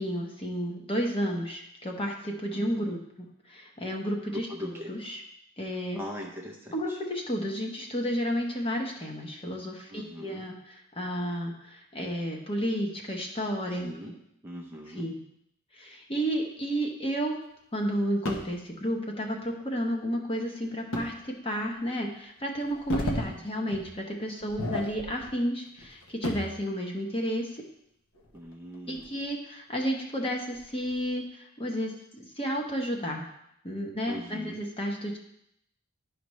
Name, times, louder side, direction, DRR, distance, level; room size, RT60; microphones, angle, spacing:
voice 1, 0.0-5.2 5.6-6.0 6.7-13.9 14.9-15.2 15.7-17.3 17.7-27.6 28.9-33.3 33.6-35.2, equal, 25° left, 1 dB, 1.0 m, -32 dB
voice 2, 4.3-4.9 5.9-7.0 9.9-10.5 13.8-14.2 14.4-15.1 23.0-23.4 28.3-29.1 34.1-34.6, equal, 10° right, -1 dB, 0.6 m, -41 dB
sound 1, 18.2-18.6 20.9-21.1 21.7-21.8 22.6-23.3 23.7-23.9 24.4-25.3 25.7-26.6 28.1-29.3 29.7-29.8 30.5-30.9, left 1 dB, 60° left, 1.1 m, -34 dB
11.0 x 5.1 x 3.1 m, 0.76 s
head